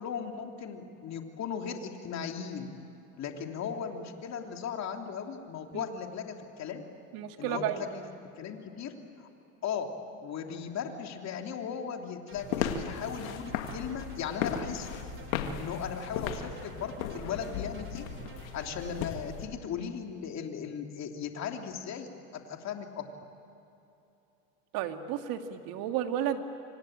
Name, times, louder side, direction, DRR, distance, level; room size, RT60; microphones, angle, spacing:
voice 1, 0.0-2.7 3.2-6.8 7.4-8.0 8.4-9.3 9.6-9.9 10.2-15.0 15.6-18.0 18.5-23.1, left 7 dB, 40° left, 4 dB, 3.1 m, -37 dB
voice 2, 7.1-7.8 24.7-26.4, right 10 dB, 60° right, 6 dB, 2.3 m, -32 dB
sound 1, 12.3-19.5, left 8 dB, 85° left, 2.2 m, -36 dB
sound 2, 12.3-19.1, right 5 dB, 30° right, 2.8 m, -49 dB
26.5 x 25.5 x 8.9 m, 2.9 s
supercardioid pair, 105°, 40 cm